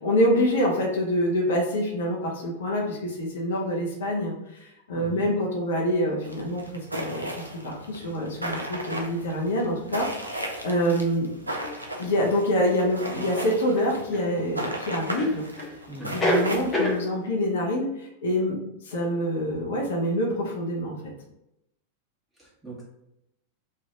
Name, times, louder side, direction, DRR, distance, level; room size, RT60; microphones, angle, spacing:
voice 1, 0.0-6.6 7.0-7.3 7.6-11.3 12.0-15.4 16.1-18.6 18.8-21.0, equal, 60° left, -1 dB, 0.7 m, -26 dB
voice 2, 4.9-5.2 15.9-16.2 22.4-22.8, right 2 dB, 5° right, -6 dB, 1.4 m, -40 dB
sound 1, 6.2-17.0, right 1 dB, 85° right, 0.5 m, -36 dB
sound 2, 11.6-11.7 13.4-14.3 15.2-15.7 16.0-17.0, left 1 dB, 20° left, 1.1 m, -26 dB
3.2 x 2.5 x 3.8 m, 0.84 s
figure-of-eight pair, 90°, 0 cm